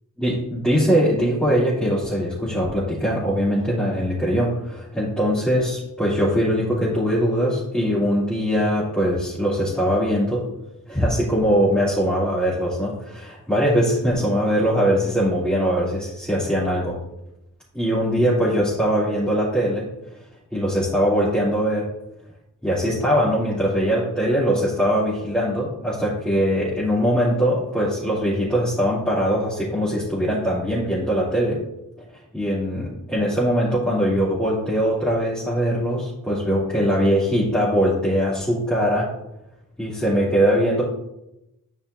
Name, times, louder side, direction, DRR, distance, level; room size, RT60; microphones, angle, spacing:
voice 1, 0.2-10.5 10.9-17.0 17.8-19.9 20.5-21.9 22.6-31.6 32.3-39.1 39.8-40.9, equal, 5° left, -10 dB, 3.0 m, -21 dB
11.5 x 5.5 x 2.7 m, 0.89 s
wide cardioid pair, 65°, 33 cm